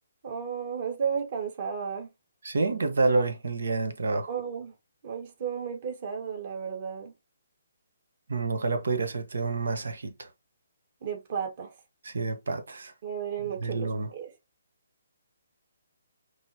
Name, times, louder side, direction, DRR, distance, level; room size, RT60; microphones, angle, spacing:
voice 1, 0.2-2.1 4.3-4.7 5.0-7.1 11.0-11.7 13.0-14.3, right 7 dB, 40° right, 1.7 m, -33 dB
voice 2, 2.4-4.3 8.3-10.3 12.0-12.9 13.6-14.1, right 3 dB, 80° right, 1.2 m, -28 dB
5.2 x 3.2 x 2.8 m
hypercardioid pair, 160°, 0 cm